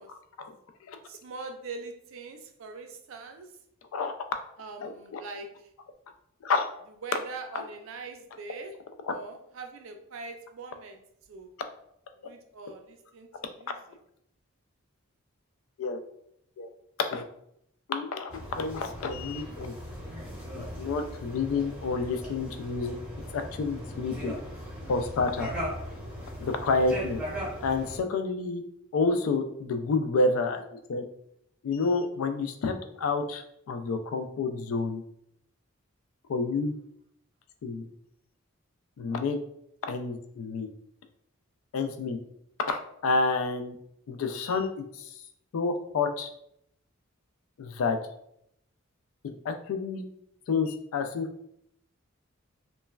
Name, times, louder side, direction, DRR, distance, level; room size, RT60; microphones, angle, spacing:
voice 1, 1.1-3.5 4.6-5.5 7.0-8.7 9.0-11.0 11.3-11.5 12.2-14.0 27.4-27.5, right 3 dB, 70° right, 5 dB, 0.4 m, -42 dB
voice 2, 4.8-5.2 6.4-6.7 7.5-7.6 9.1-9.2 15.8-16.0 16.6-16.7 17.1-17.2 17.9-19.7 20.5-23.0 23.3-24.3 24.9-25.5 26.4-27.2 27.6-28.6 28.9-30.6 30.9-31.0 31.6-35.0 36.3-36.7 37.6-37.8 39.0-39.4 39.8-40.7 41.7-42.2 42.7-43.7 44.1-45.2 45.5-46.3 47.6-48.0 49.4-50.0 50.5-51.3, left 4 dB, 80° left, 8 dB, 0.3 m, -29 dB
sound 1, 18.3-28.0, equal, 5° right, 0.6 m, -38 dB
3.0 x 2.1 x 2.3 m, 0.73 s
head